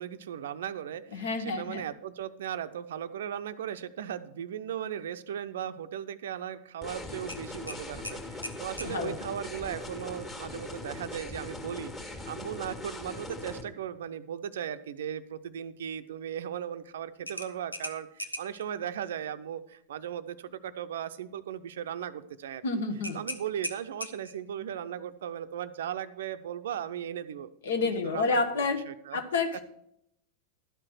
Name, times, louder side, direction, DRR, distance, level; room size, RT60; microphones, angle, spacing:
voice 1, 0.0-22.6 23.1-27.5 27.8-29.2, right 9 dB, 60° right, 12 dB, 0.5 m, -37 dB
voice 2, 1.1-1.8 8.4-8.5 8.8-9.2 22.6-23.2 27.6-28.8 29.1-29.6, left 4 dB, 60° left, 8 dB, 1.1 m, -29 dB
sound 1, 6.8-13.6, left 2 dB, 20° left, 1.7 m, -41 dB
sound 2, 7.3-9.0 11.6-11.8 12.2-12.3 17.3-18.6 23.0-24.5, left 1 dB, 85° left, 0.8 m, -39 dB
12.0 x 5.7 x 6.3 m, 0.77 s
figure-of-eight pair, 90°, 0 cm